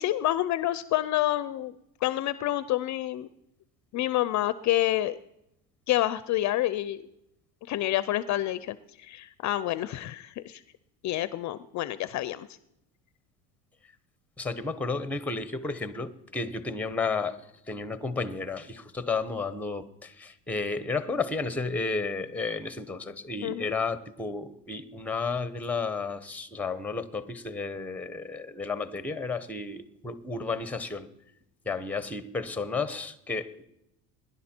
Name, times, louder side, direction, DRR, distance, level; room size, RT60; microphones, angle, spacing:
voice 1, 0.0-3.3 3.9-5.2 5.9-7.0 7.7-10.6 11.0-12.5 23.4-23.7, left 14 dB, 45° left, 0.5 m, -28 dB
voice 2, 14.4-31.1 31.6-33.6, left 4 dB, 5° left, 0.8 m, -32 dB
20.5 x 11.0 x 4.4 m
cardioid pair, 120°, 41 cm